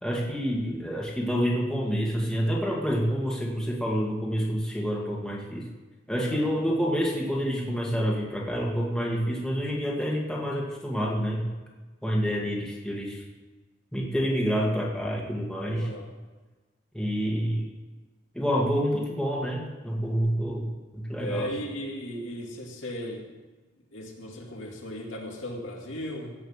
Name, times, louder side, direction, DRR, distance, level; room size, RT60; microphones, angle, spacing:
voice 1, 0.0-5.7 6.1-11.5 12.0-13.2 13.9-15.9 16.9-17.7 18.3-20.7 20.9-21.5, equal, 5° left, -3 dB, 2.0 m, -28 dB
voice 2, 15.8-16.1 21.2-23.3 23.9-26.3, equal, 75° left, 0 dB, 2.3 m, -36 dB
16.5 x 5.9 x 7.3 m, 1.3 s
head